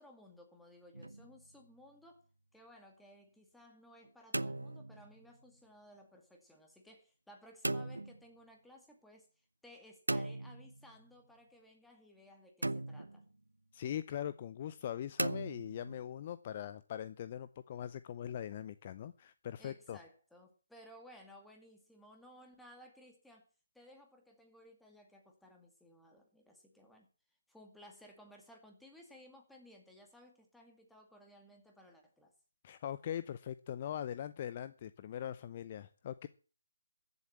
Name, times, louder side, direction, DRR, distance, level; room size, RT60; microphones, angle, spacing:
voice 1, 0.0-2.2 2.5-9.3 9.6-13.2 19.6-23.5 23.7-27.1 27.5-32.3, equal, ahead, 2 dB, 2.2 m, -59 dB
sound 1, 0.9-1.5 4.0-5.3 7.6-8.2 10.1-11.0 12.6-13.3 15.2-16.1, right 2 dB, 85° right, 0.7 m, -38 dB
voice 2, 13.7-20.0 32.6-36.3, left 10 dB, 30° left, 14 dB, 0.5 m, -41 dB
14.5 x 7.9 x 7.3 m, 0.39 s
figure-of-eight pair, 150°, 0 cm